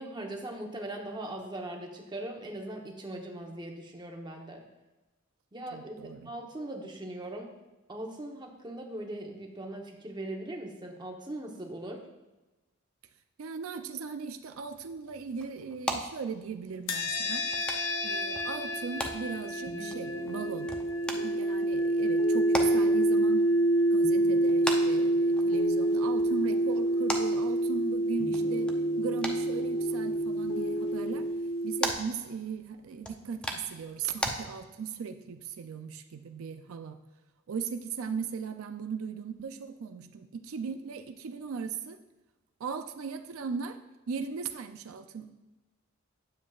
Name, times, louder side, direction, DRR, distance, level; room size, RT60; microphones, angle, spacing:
voice 1, 0.0-4.6 5.5-7.5 7.9-12.0, right 1 dB, 20° right, 1 dB, 0.9 m, -40 dB
voice 2, 5.7-6.3 13.4-17.8 18.0-20.7 21.1-23.5 23.9-28.7 29.0-31.3 31.6-37.0 37.5-42.0 42.6-43.8 44.1-45.3, right 6 dB, 90° right, 8 dB, 0.4 m, -38 dB
sound 1, 14.5-34.3, equal, 5° left, 0.6 m, -41 dB
sound 2, 16.9-31.9, right 1 dB, 75° left, 0.9 m, -27 dB
sound 3, 19.6-27.9 28.2-31.3, left 3 dB, 55° left, 1.2 m, -43 dB
9.7 x 7.1 x 2.4 m, 1.1 s
head